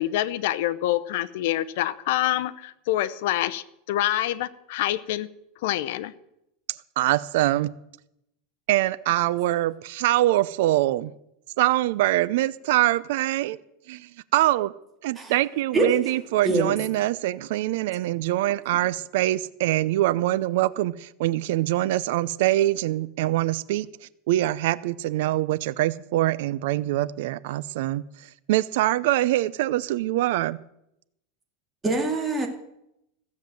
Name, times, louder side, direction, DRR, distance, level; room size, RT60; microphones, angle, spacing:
voice 1, 0.0-5.3 5.6-6.1, left 14 dB, 65° left, 14 dB, 0.7 m, -26 dB
voice 2, 7.0-7.7 8.7-11.1 11.6-13.6 13.9-14.7 15.0-30.6, right 15 dB, 65° right, 19 dB, 0.5 m, -24 dB
voice 3, 31.8-32.5, right 2 dB, 10° right, 3 dB, 2.0 m, -24 dB
15.5 x 7.4 x 7.6 m, 0.82 s
supercardioid pair, 160°, 0 cm